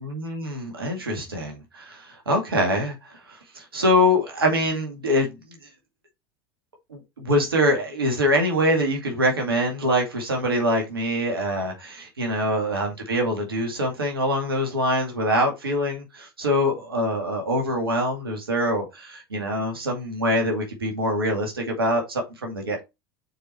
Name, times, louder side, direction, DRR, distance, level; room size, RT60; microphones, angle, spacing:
voice 1, 0.1-2.9 3.5-5.4 6.9-22.8, equal, 80° right, 2.4 m, -24 dB
6.6 x 4.7 x 4.3 m
figure-of-eight pair, 75°, 12 cm